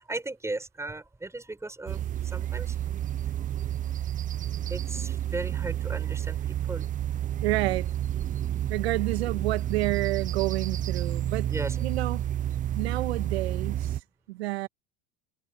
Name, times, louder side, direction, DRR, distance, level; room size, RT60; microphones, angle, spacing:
voice 1, 0.1-2.8 4.7-6.9 11.5-11.8, right 2 dB, 10° right, 7.0 m, -36 dB
sound 1, 1.9-14.0, right 11 dB, 25° right, 0.6 m, -30 dB
voice 2, 7.4-7.9 8.7-11.5 11.8-12.3 12.8-14.0 14.3-14.7, right 19 dB, 90° right, 1.8 m, -29 dB
supercardioid pair, 115°, 31 cm